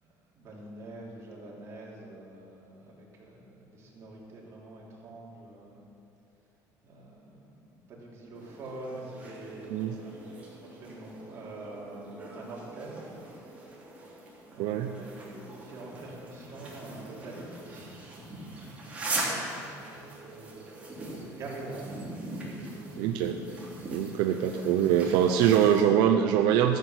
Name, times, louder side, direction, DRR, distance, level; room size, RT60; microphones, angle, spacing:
voice 1, 0.3-5.9 6.8-13.6 14.5-18.5 18.8-20.7 21.3-22.1 24.4-26.0, right 2 dB, 40° right, -4 dB, 3.0 m, -45 dB
sound 1, 8.3-25.8, right 2 dB, 20° right, 3.0 m, -41 dB
voice 2, 14.6-14.9 23.0-23.4 23.9-26.8, right 9 dB, 85° right, 4 dB, 0.6 m, -23 dB
13.5 x 8.2 x 6.1 m, 2.7 s
cardioid pair, 150°, 7 cm